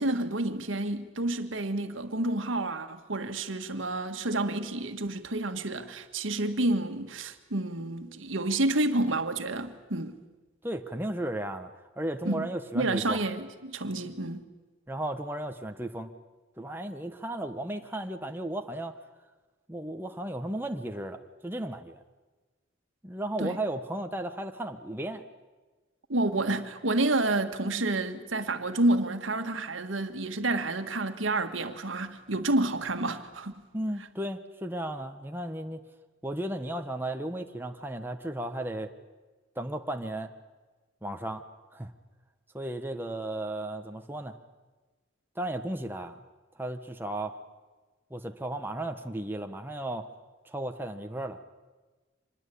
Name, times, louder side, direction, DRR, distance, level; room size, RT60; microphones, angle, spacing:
voice 1, 0.0-10.2 12.3-12.5 12.7-14.5 23.4-23.6 26.1-33.6, right 2 dB, 90° right, 1.7 m, -29 dB
voice 2, 10.6-11.7 12.0-13.2 14.9-16.1 16.6-19.0 19.7-22.0 23.0-25.2 33.7-35.8 36.2-38.9 39.5-40.3 41.0-41.4 41.7-41.9 42.5-44.3 45.3-46.2 46.5-47.4 48.1-50.1 50.4-51.4, right 1 dB, 10° right, 1.3 m, -35 dB
25.5 x 21.0 x 8.6 m
head